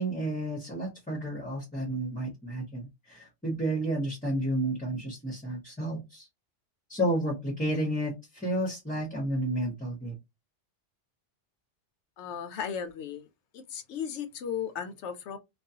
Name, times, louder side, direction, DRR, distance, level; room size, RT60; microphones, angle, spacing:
voice 1, 0.0-6.3 6.9-10.1, right 1 dB, 10° left, 0.7 m, -31 dB
voice 2, 12.2-13.3 13.5-15.4, left 7 dB, 75° left, 0.8 m, -36 dB
2.4 x 2.3 x 2.7 m
omnidirectional pair, 1.2 m